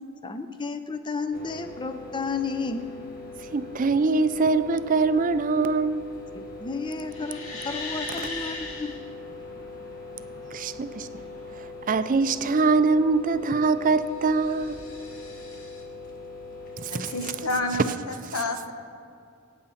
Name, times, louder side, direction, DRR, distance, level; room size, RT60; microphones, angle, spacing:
voice 1, 0.2-2.8 6.3-8.9, left 4 dB, 20° left, 0.6 m, -32 dB
sound 1, 1.3-17.7, left 3 dB, 40° left, 1.2 m, -41 dB
voice 2, 3.5-6.1 10.5-11.1 11.9-14.8 16.8-17.1, right 4 dB, 35° right, 0.4 m, -23 dB
sound 2, 7.1-9.0 13.8-15.8, left 3 dB, 65° left, 2.3 m, -38 dB
voice 3, 16.9-18.7, left 2 dB, 85° left, 1.4 m, -30 dB
23.5 x 9.0 x 4.3 m
head